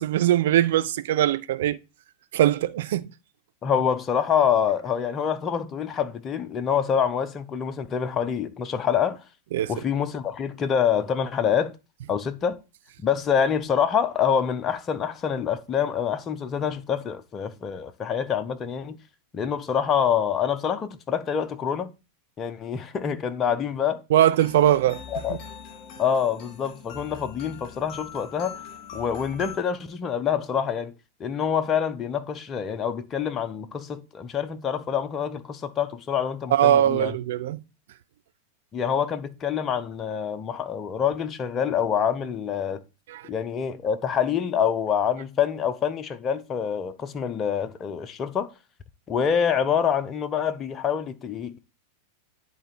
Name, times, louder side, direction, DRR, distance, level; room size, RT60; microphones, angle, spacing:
voice 1, 0.0-1.8 2.3-3.1 9.5-9.7 24.1-25.0 25.3-25.4 36.5-37.6 43.1-43.2, right 12 dB, 55° right, 0.5 m, -21 dB
voice 2, 3.6-9.2 9.7-11.7 12.1-12.6 13.0-19.0 19.3-21.9 22.4-24.0 25.1-25.4 26.0-28.6 28.9-30.9 31.2-37.2 38.7-42.8 43.3-48.5 49.1-51.6, left 7 dB, 25° left, 0.8 m, -26 dB
sound 1, 24.3-29.6, left 7 dB, 40° left, 2.3 m, -42 dB
10.0 x 3.8 x 4.3 m
figure-of-eight pair, 90°, 0 cm